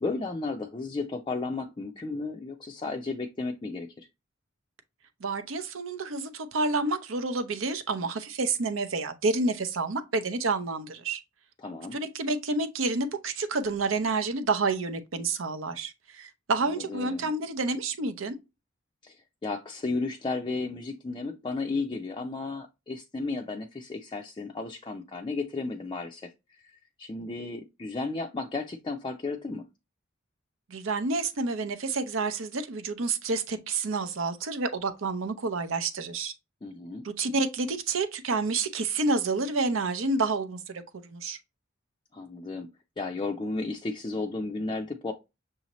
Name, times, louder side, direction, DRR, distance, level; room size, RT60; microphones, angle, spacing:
voice 1, 0.0-3.9 11.6-12.0 16.6-17.3 19.0-29.7 36.6-37.1 42.1-42.7 43.0-45.1, left 3 dB, 25° left, 0.4 m, -34 dB
voice 2, 5.2-11.2 11.9-18.3 30.7-36.3 37.0-41.4, right 3 dB, 80° right, 0.7 m, -29 dB
6.2 x 2.8 x 2.9 m
head